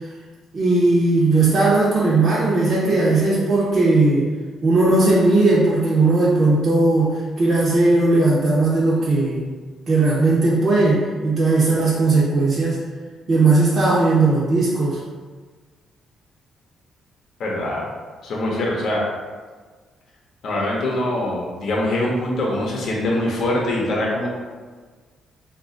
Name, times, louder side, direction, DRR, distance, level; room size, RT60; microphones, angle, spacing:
voice 1, 0.5-4.3 4.6-9.4 9.9-12.8 13.3-15.0, right 2 dB, 45° right, -8 dB, 0.7 m, -17 dB
voice 2, 17.4-17.9 18.2-19.0 20.4-24.3, left 1 dB, 65° left, -3 dB, 0.7 m, -23 dB
2.9 x 2.4 x 3.7 m, 1.5 s
cardioid pair, 90°, 0 cm